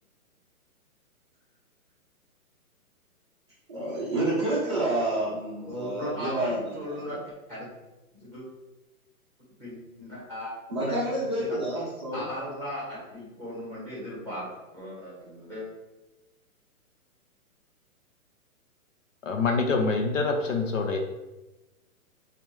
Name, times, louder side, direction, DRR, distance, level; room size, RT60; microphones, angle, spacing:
voice 1, 3.7-7.0 10.7-12.2, right 1 dB, 20° right, 0.5 m, -29 dB
voice 2, 5.6-7.2 7.5-7.7 8.2-8.4 9.6-11.6 12.1-14.5 14.7-15.6, equal, 5° left, 1.3 m, -37 dB
voice 3, 19.2-21.0, left 4 dB, 55° left, 0.8 m, -25 dB
5.9 x 2.5 x 3.3 m
hypercardioid pair, 160°, 45 cm